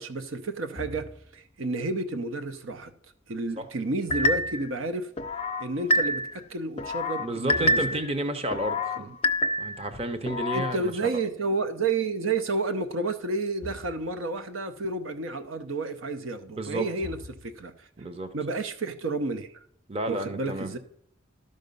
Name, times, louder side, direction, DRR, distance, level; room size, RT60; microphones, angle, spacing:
voice 1, 0.0-2.9 3.3-5.1 5.6-7.9 9.0-9.1 10.5-17.2 17.4-17.9 18.3-19.5 20.1-20.8, right 3 dB, 85° right, 8 dB, 0.8 m, -31 dB
sound 1, 0.8-1.5 4.1-4.9 7.5-8.7 13.6-14.3 17.0-17.8, left 2 dB, 45° right, 2.2 m, -44 dB
sound 2, 4.1-4.7 5.2-6.4 6.8-8.1 8.5-9.9 10.3-10.8, left 1 dB, 30° left, 0.4 m, -27 dB
voice 2, 7.2-9.1 9.6-11.1 16.5-16.9 18.0-18.3 19.9-20.8, right 1 dB, 30° right, 9 dB, 0.8 m, -31 dB
12.0 x 5.3 x 5.3 m, 0.67 s
head